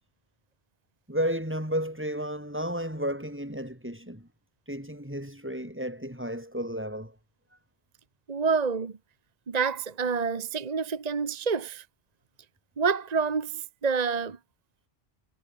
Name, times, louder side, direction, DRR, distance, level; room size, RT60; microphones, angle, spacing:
voice 1, 1.1-4.3 4.7-7.1, equal, 10° right, 6.2 m, -32 dB
voice 2, 8.3-9.0 9.5-11.8 12.8-14.4, right 5 dB, 40° right, 1.1 m, -28 dB
omnidirectional pair, 1.1 m